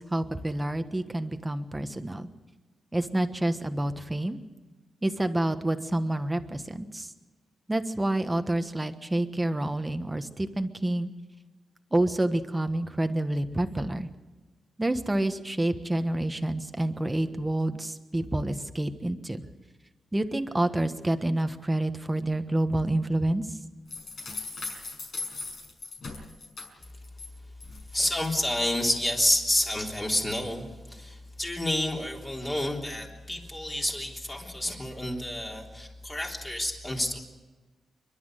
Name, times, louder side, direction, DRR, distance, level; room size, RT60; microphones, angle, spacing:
voice 1, 0.0-2.3 2.9-4.4 5.0-7.1 7.7-11.1 11.9-14.1 14.8-19.4 20.1-23.5, right 1 dB, 10° right, 8 dB, 1.3 m, -28 dB
sound 1, 23.9-27.3 27.6-28.3, left 3 dB, 55° left, 5.9 m, -39 dB
voice 2, 27.9-37.2, left 1 dB, 15° left, 0 dB, 3.6 m, -29 dB
29.0 x 12.0 x 9.2 m, 1.2 s
wide cardioid pair, 145°, 0 cm